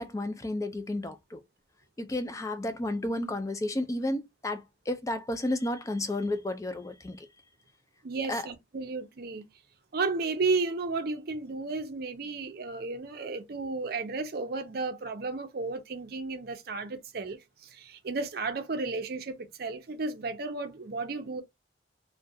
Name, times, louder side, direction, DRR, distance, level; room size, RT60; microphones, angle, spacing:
voice 1, 0.0-1.4 2.0-7.3 8.3-8.5, left 1 dB, 15° left, 0.4 m, -32 dB
voice 2, 8.0-9.4 9.9-21.4, right 3 dB, 55° right, 0.5 m, -33 dB
2.3 x 2.2 x 2.6 m
head